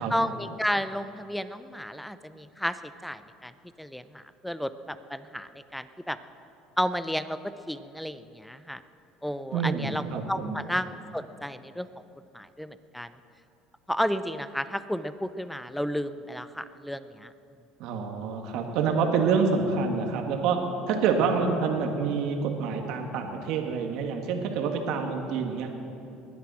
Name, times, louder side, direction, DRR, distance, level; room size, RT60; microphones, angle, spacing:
voice 1, 0.1-3.5 3.8-6.2 6.8-8.8 9.2-12.0 12.3-13.1 13.9-17.3, equal, ahead, 13 dB, 0.6 m, -32 dB
voice 2, 9.5-10.6 17.8-20.6 20.9-25.7, right 5 dB, 70° right, 4 dB, 1.9 m, -27 dB
20.5 x 9.5 x 6.3 m, 2.8 s
supercardioid pair, 110°, 0 cm